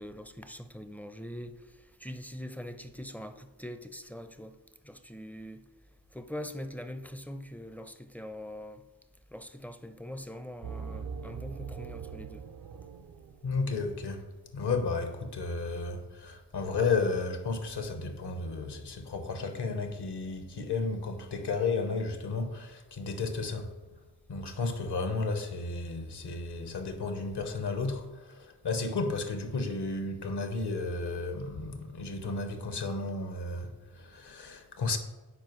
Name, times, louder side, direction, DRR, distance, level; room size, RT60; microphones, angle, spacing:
voice 1, 0.0-4.6 4.8-5.7 6.1-8.8 9.3-12.4, equal, 5° left, 0.5 m, -43 dB
sound 1, 10.6-14.0, right 6 dB, 55° right, 0.6 m, -42 dB
voice 2, 13.4-14.2 14.5-23.7 24.3-35.0, left 4 dB, 60° left, 1.1 m, -33 dB
10.5 x 4.5 x 3.1 m
supercardioid pair, 40°, 45 cm